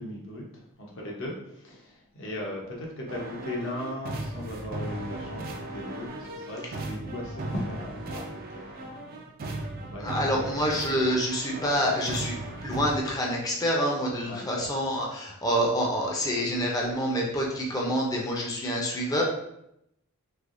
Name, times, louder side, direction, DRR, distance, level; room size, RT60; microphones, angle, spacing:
voice 1, 0.0-9.2 9.8-10.6 14.2-14.4, left 1 dB, 60° left, -2 dB, 0.9 m, -38 dB
sound 1, 3.1-13.0, right 2 dB, 40° right, 0.4 m, -37 dB
voice 2, 10.0-12.4 12.6-19.2, equal, 15° left, -2 dB, 0.6 m, -27 dB
3.4 x 3.0 x 2.5 m, 0.79 s
head